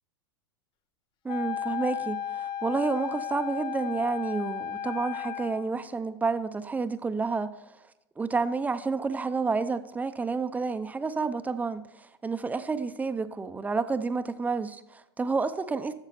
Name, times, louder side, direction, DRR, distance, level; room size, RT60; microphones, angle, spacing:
voice 1, 1.2-7.6 8.2-15.9, right 4 dB, 10° right, 0.6 m, -30 dB
Wind instrument woodwind instrument, 1.3-5.7, left 9 dB, 35° left, 0.6 m, -34 dB
12.5 x 6.9 x 4.2 m
hypercardioid pair, 100°, 14 cm